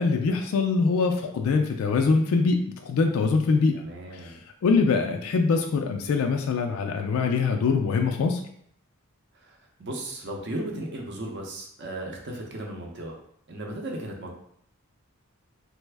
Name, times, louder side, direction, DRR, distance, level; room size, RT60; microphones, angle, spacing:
voice 1, 0.0-3.8 4.1-4.3 4.6-8.4, left 4 dB, 70° left, 4 dB, 0.3 m, -23 dB
voice 2, 3.7-4.4 9.4-13.2 13.5-14.3, right 1 dB, 50° right, 1 dB, 0.6 m, -36 dB
3.2 x 2.1 x 3.3 m, 0.68 s
head